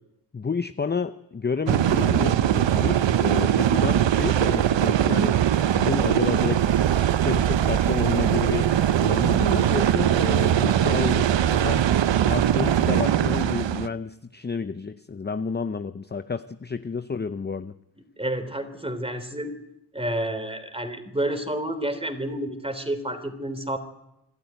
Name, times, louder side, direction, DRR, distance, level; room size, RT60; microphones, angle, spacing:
voice 1, 0.3-6.6 7.0-8.7 9.0-11.9 12.2-17.8, left 5 dB, 20° left, 11 dB, 0.7 m, -30 dB
sound 1, 1.7-13.9, right 10 dB, 65° right, 0.9 m, -21 dB
voice 2, 18.2-19.5 19.9-23.8, right 1 dB, 10° right, 9 dB, 3.3 m, -29 dB
26.5 x 12.5 x 9.3 m, 0.89 s
cardioid pair, 75°, 48 cm